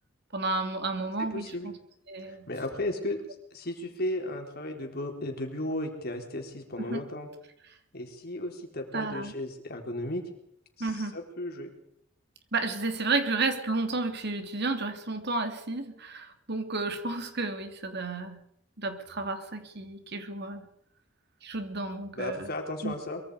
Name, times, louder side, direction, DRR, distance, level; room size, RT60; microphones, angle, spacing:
voice 1, 0.3-1.7 2.1-2.5 6.8-7.0 8.9-9.3 10.8-11.2 12.5-18.4 18.8-20.7 21.4-22.5 22.8-22.9, right 3 dB, 60° right, 6 dB, 2.9 m, -32 dB
voice 2, 1.3-1.7 2.3-3.2 3.5-7.3 7.9-10.2 10.8-11.7 22.2-23.2, left 1 dB, 50° left, 3 dB, 4.2 m, -35 dB
24.0 x 23.0 x 5.0 m, 0.71 s
head